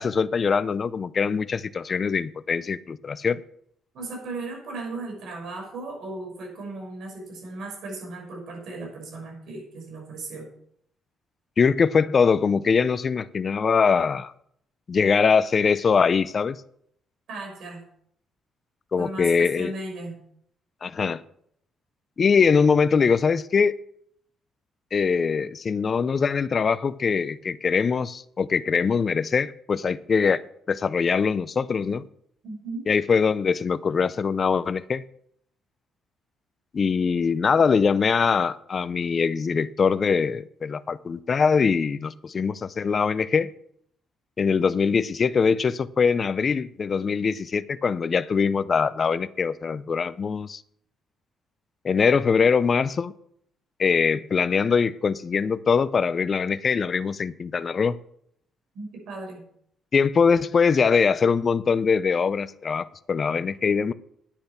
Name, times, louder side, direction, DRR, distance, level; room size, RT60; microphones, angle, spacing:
voice 1, 0.0-3.4 11.6-14.3 14.9-16.6 18.9-19.7 20.8-21.2 22.2-23.7 24.9-30.4 30.7-32.0 32.9-35.0 36.7-43.5 44.4-50.6 51.8-53.1 53.8-58.0 59.9-63.9, left 5 dB, 45° left, 0.5 m, -22 dB
voice 2, 3.9-10.5 17.3-17.8 19.0-20.2 32.4-32.9 58.7-59.4, right 2 dB, 70° right, 6.0 m, -36 dB
10.0 x 8.7 x 5.9 m
cardioid pair, 90°, 0 cm